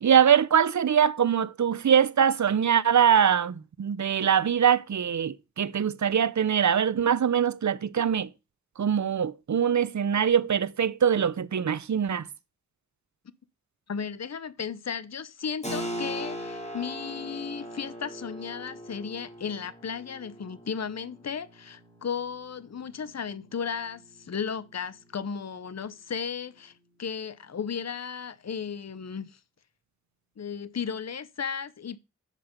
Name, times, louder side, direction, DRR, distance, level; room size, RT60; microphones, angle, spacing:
voice 1, 0.0-8.3 8.8-12.3, right 8 dB, 75° right, 0.6 m, -23 dB
voice 2, 13.9-26.7 27.0-29.4 30.4-32.0, left 6 dB, 60° left, 0.7 m, -35 dB
Keyboard (musical), 15.6-26.0, equal, 25° left, 2.6 m, -41 dB
7.6 x 5.1 x 6.9 m
wide cardioid pair, 40°, 29 cm